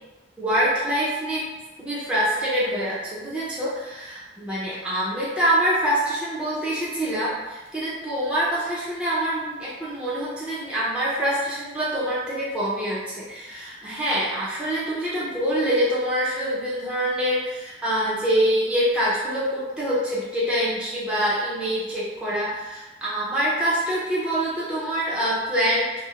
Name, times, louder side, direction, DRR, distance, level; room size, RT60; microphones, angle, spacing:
voice 1, 0.4-1.5 1.8-25.9, equal, 5° right, -8 dB, 0.6 m, -25 dB
2.6 x 2.0 x 2.7 m, 1.1 s
head